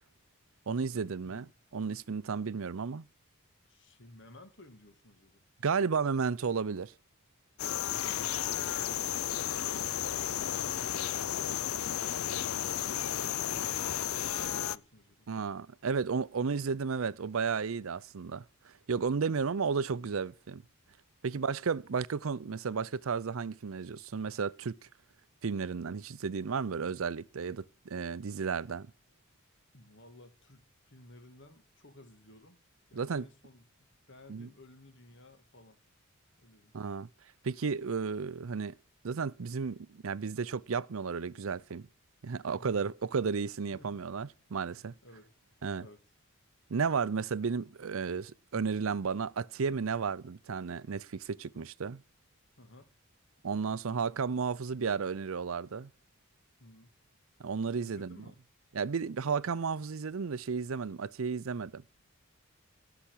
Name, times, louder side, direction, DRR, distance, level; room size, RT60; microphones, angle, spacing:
voice 1, 0.7-1.5 1.7-3.1 5.6-6.9 15.3-20.6 21.2-24.8 25.4-28.9 32.9-33.3 34.3-34.5 36.7-37.1 37.4-38.7 39.0-41.9 42.2-44.9 45.6-45.9 46.7-52.0 53.4-55.9 57.4-58.2 58.7-61.8, right 5 dB, 70° right, 0.5 m, -33 dB
voice 2, 3.6-5.5 7.8-9.3 9.9-11.6 12.1-15.3 21.3-21.6 29.7-32.6 32.9-35.8 36.4-36.7 42.5-42.8 43.7-44.0 45.0-45.3 45.8-46.0 51.5-51.6 52.6-52.9 56.6-56.9 57.8-58.4, left 1 dB, 55° left, 2.5 m, -56 dB
sound 1, 7.6-14.8, left 10 dB, 80° left, 0.5 m, -33 dB
17.5 x 5.9 x 8.4 m
head